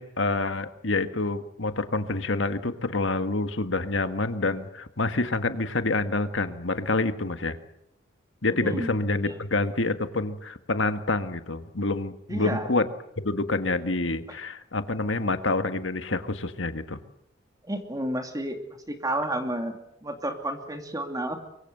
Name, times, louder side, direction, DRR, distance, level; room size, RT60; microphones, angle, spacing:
voice 1, 0.0-7.6 8.4-12.9 13.2-17.0, left 2 dB, 75° left, 9 dB, 1.7 m, -27 dB
voice 2, 8.5-9.0 9.2-9.4 12.3-12.7 14.3-14.4 17.7-18.6 18.9-21.4, right 1 dB, 20° right, 5 dB, 2.6 m, -31 dB
23.5 x 23.5 x 7.9 m, 0.78 s
head